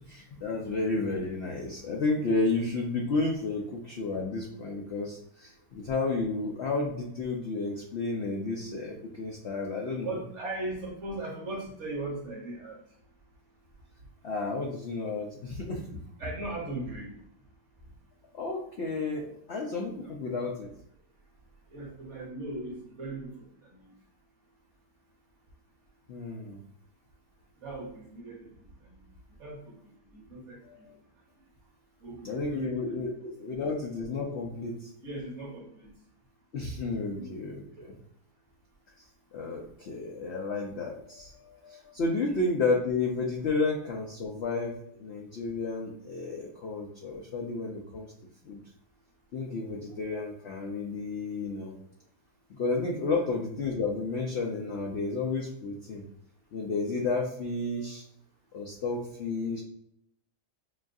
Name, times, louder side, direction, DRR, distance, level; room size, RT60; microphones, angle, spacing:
voice 1, 0.1-10.2 14.2-16.0 18.3-20.7 26.1-26.6 30.6-30.9 32.2-33.1 33.4-34.9 36.5-38.0 39.3-48.1 48.4-48.6 49.3-51.8 52.5-56.0 56.5-58.0 58.5-59.6, left 3 dB, 85° left, -1 dB, 0.5 m, -32 dB
voice 2, 10.0-12.8 15.9-17.1 20.0-20.3 21.7-23.8 27.6-29.0 29.4-29.8 30.1-30.9 32.0-33.1 35.0-35.9 36.9-37.2 37.8-37.9 42.2-42.5 53.2-53.3, right 2 dB, 50° right, -1 dB, 1.1 m, -39 dB
6.0 x 2.4 x 2.6 m, 0.73 s
omnidirectional pair, 1.8 m